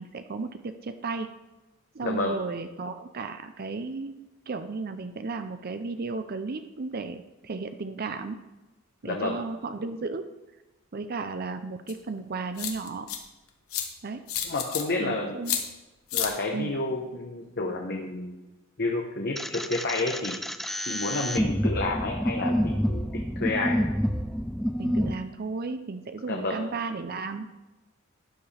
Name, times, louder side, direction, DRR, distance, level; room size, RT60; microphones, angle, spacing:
voice 1, 0.0-1.3 1.9-8.4 9.0-10.3 10.9-13.1 14.0-14.2 15.0-15.6 16.5-16.7 24.8-27.6, right 4 dB, 45° right, 9 dB, 0.5 m, -34 dB
voice 2, 2.0-2.4 9.0-9.4 14.4-15.4 16.1-18.4 18.8-20.4 20.9-23.8 26.3-26.6, left 2 dB, 50° left, 1 dB, 1.0 m, -30 dB
sound 1, 11.9-12.0 12.6-13.2 13.7-13.9 14.3-14.8 15.4-15.6 16.1-16.3, left 9 dB, 80° left, 1.3 m, -29 dB
sound 2, 19.4-25.1, equal, ahead, 0.4 m, -28 dB
12.0 x 9.5 x 3.4 m, 1.1 s
head